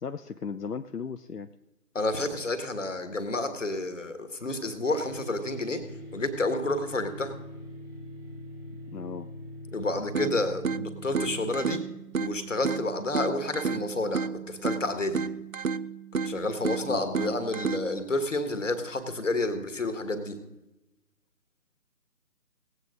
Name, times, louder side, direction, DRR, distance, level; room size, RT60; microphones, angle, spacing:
voice 1, 0.0-1.5 8.9-9.3 16.9-17.3, left 6 dB, 80° left, 9 dB, 0.7 m, -36 dB
voice 2, 2.0-5.8 6.1-7.3 9.7-11.8 12.2-15.2 16.1-20.4, left 2 dB, 50° left, 9 dB, 1.7 m, -30 dB
sound 1, 4.8-11.5, left 1 dB, 10° left, 1.2 m, -42 dB
sound 2, 10.1-18.1, right 5 dB, 65° right, 0.6 m, -32 dB
18.5 x 8.2 x 3.8 m, 0.95 s
figure-of-eight pair, 155°, 46 cm